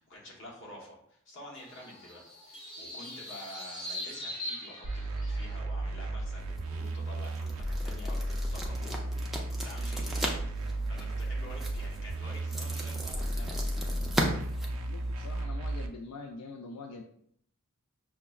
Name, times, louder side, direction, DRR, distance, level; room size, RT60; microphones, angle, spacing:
voice 1, 0.0-13.8, left 1 dB, 55° left, -2 dB, 1.0 m, -49 dB
sound 1, 1.5-5.5, left 1 dB, 20° left, 0.8 m, -41 dB
sound 2, 4.8-15.9, right 1 dB, 75° right, 0.4 m, -34 dB
sound 3, 6.4-15.4, equal, ahead, 0.3 m, -38 dB
voice 2, 14.8-17.0, left 3 dB, 90° left, 3 dB, 0.3 m, -44 dB
5.7 x 2.0 x 2.3 m, 0.67 s
head